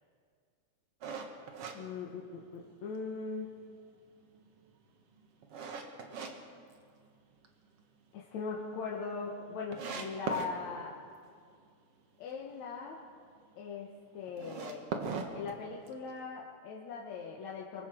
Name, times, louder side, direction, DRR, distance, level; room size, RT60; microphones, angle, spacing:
sound 1, 1.0-2.7 3.1-3.2 3.8-6.3 6.7-7.5 7.8-7.9 8.3-8.4 8.5-8.6 9.3-9.4 9.7-10.5 14.3-16.1, right 5 dB, 55° right, 2.2 m, -39 dB
voice 1, 1.7-3.5 8.1-10.9 12.2-13.0 13.6-14.8 15.3-17.9, left 4 dB, 65° left, -2 dB, 2.6 m, -40 dB
24.5 x 23.0 x 4.7 m, 2.2 s
omnidirectional pair, 3.6 m